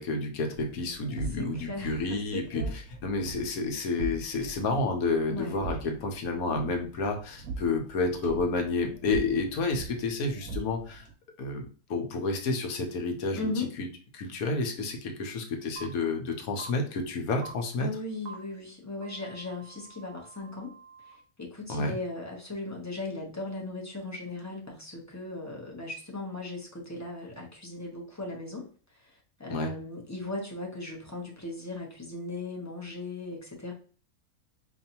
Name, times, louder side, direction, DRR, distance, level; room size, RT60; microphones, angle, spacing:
voice 1, 0.0-2.6 3.0-11.0 11.4-13.9 14.1-17.9 21.7-22.0 29.5-29.7, left 3 dB, 80° left, 4 dB, 1.2 m, -30 dB
sound 1, 0.6-11.1, right 3 dB, 75° right, 1.4 m, -41 dB
voice 2, 1.4-2.7 5.3-5.8 13.4-13.8 17.8-20.7 21.0-33.7, left 2 dB, 15° left, -2 dB, 0.6 m, -38 dB
sound 2, 15.8-15.9 16.6-16.7 17.4-17.5 18.3-18.4 19.0-21.1, right 5 dB, 60° right, 0.8 m, -46 dB
4.6 x 2.6 x 2.8 m, 0.40 s
omnidirectional pair, 1.5 m